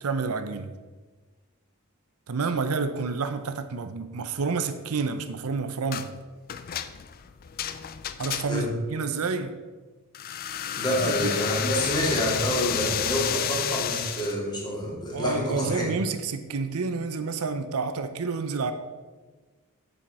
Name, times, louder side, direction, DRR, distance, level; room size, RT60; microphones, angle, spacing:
voice 1, 0.0-0.7 2.3-6.1 8.2-9.6 10.7-11.3 15.1-18.7, right 4 dB, 75° right, 0.6 m, -29 dB
sound 1, 5.9-6.1 6.5-8.8 10.1-14.4, left 9 dB, 40° left, 0.4 m, -31 dB
voice 2, 10.8-15.9, equal, 20° left, 2.4 m, -27 dB
7.8 x 7.1 x 4.8 m
head